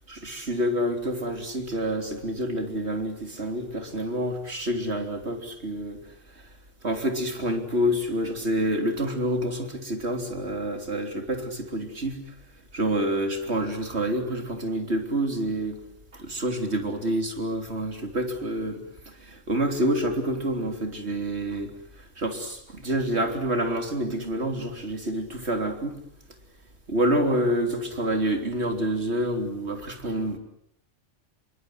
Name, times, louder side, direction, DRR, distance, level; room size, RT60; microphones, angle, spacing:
voice 1, 0.1-6.0 6.8-12.2 12.7-15.8 16.1-21.7 22.2-26.0 26.9-30.4, right 1 dB, 55° right, 5 dB, 3.7 m, -28 dB
27.0 x 24.0 x 8.0 m, 0.72 s
omnidirectional pair, 1.3 m